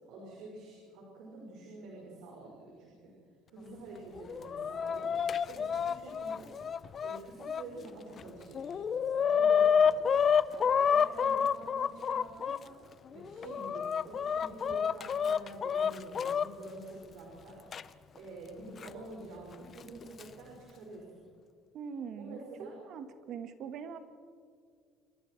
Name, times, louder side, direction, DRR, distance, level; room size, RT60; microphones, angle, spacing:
voice 1, 0.0-3.1 3.5-5.1 5.5-6.5 7.0-10.0 10.5-12.8 13.1-17.6 18.1-21.2 22.2-22.8, right 2 dB, 75° right, -2 dB, 5.6 m, -48 dB
Chicken rooster, 4.2-7.6 8.2-8.3 8.5-12.6 13.2-16.5 17.7-17.8 18.8-18.9 19.9-20.2, left 7 dB, 35° left, 0.5 m, -29 dB
voice 2, 21.7-24.0, right 7 dB, 55° right, 9 dB, 1.5 m, -42 dB
27.0 x 23.5 x 4.7 m, 2.1 s
cardioid pair, 140°, 0 cm